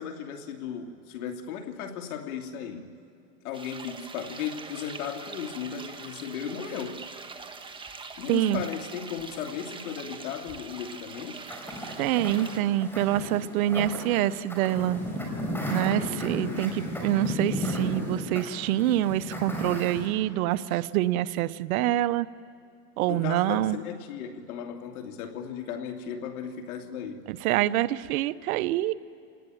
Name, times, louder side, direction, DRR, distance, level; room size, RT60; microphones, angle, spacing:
voice 1, 0.0-2.9 3.4-7.0 8.2-11.4 15.9-16.6 23.1-27.2, left 8 dB, 70° left, 4 dB, 2.8 m, -36 dB
sound 1, 3.5-12.6, right 4 dB, 10° right, 1.3 m, -43 dB
voice 2, 8.3-8.6 12.0-15.0 15.7-22.3 23.0-23.8 27.3-28.9, right 13 dB, 65° right, 15 dB, 0.9 m, -26 dB
sound 2, 11.5-20.1, equal, 5° left, 4.7 m, -34 dB
28.0 x 19.0 x 9.3 m, 2.4 s
supercardioid pair, 135°, 45 cm